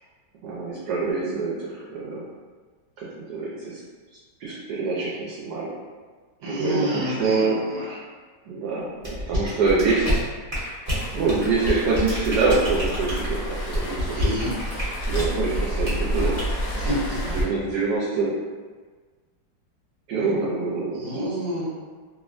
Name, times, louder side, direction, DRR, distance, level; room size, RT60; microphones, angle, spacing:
voice 1, 0.4-2.2 3.0-3.8 4.4-5.7 6.4-7.6 8.5-10.2 11.1-14.3 15.1-16.9 17.3-18.3 20.1-21.3, right 4 dB, 70° right, -6 dB, 1.0 m, -25 dB
voice 2, 6.4-7.9 14.1-14.5 16.8-16.9 20.9-21.7, equal, 55° right, -7 dB, 1.3 m, -29 dB
sound 1, 9.0-15.3 15.8-16.0 16.4-16.6, left 1 dB, 30° right, 0.7 m, -28 dB
Waves surf, 10.9-17.4, equal, 70° left, 0.7 m, -30 dB
3.3 x 2.0 x 2.4 m, 1.5 s
omnidirectional pair, 1.9 m